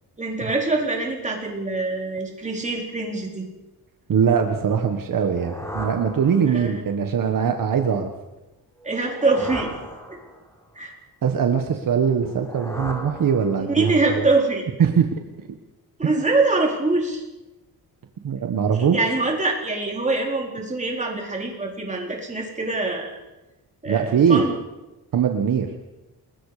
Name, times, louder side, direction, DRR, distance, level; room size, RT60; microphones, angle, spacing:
voice 1, 0.2-3.5 6.4-6.7 8.8-9.7 10.1-10.2 10.8-10.9 13.7-14.6 16.0-17.2 18.9-23.2 23.8-24.5, right 3 dB, 20° right, 0 dB, 4.4 m, -24 dB
voice 2, 4.1-8.1 11.2-14.3 14.8-15.2 16.0-16.3 18.2-19.1 23.9-24.5 25.1-25.7, right 7 dB, 60° right, 5 dB, 1.7 m, -21 dB
sound 1, 5.0-6.9 8.8-10.6 12.1-13.9, equal, 10° left, 4.5 m, -36 dB
28.5 x 21.0 x 5.1 m, 1.0 s
wide cardioid pair, 140°, 38 cm